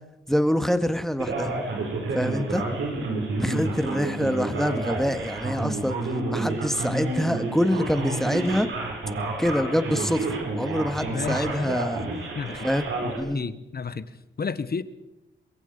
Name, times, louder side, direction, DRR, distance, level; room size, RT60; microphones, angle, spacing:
voice 1, 0.3-1.6 2.1-2.6 3.4-8.7 9.4-12.1 12.6-12.9 13.2-13.4, equal, ahead, 1.9 m, -25 dB
Male speech man speaking, 1.2-13.2, right 2 dB, 75° right, 6.9 m, -30 dB
voice 2, 11.0-11.8 12.3-12.7 13.0-14.1 14.4-14.8, left 5 dB, 50° left, 1.4 m, -32 dB
23.0 x 22.0 x 5.5 m
cardioid pair, 55°, 20 cm